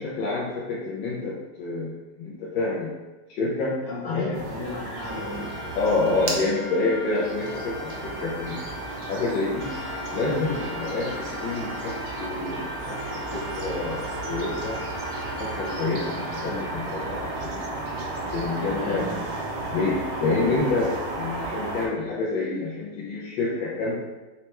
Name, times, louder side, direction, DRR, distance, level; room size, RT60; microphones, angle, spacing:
voice 1, 0.0-3.0 3.3-4.3 5.8-8.7 9.1-9.8 10.1-14.8 15.4-17.7 18.3-19.3 19.7-24.0, left 3 dB, 90° left, -6 dB, 1.4 m, -28 dB
voice 2, 3.8-5.6 18.8-19.1, left 2 dB, 70° left, -6 dB, 2.1 m, -35 dB
sound 1, 4.3-21.9, right 2 dB, 70° right, 1.3 m, -34 dB
sound 2, 4.6-18.4, left 2 dB, 35° left, 0.9 m, -39 dB
4.4 x 3.1 x 2.9 m, 1.1 s
omnidirectional pair, 2.0 m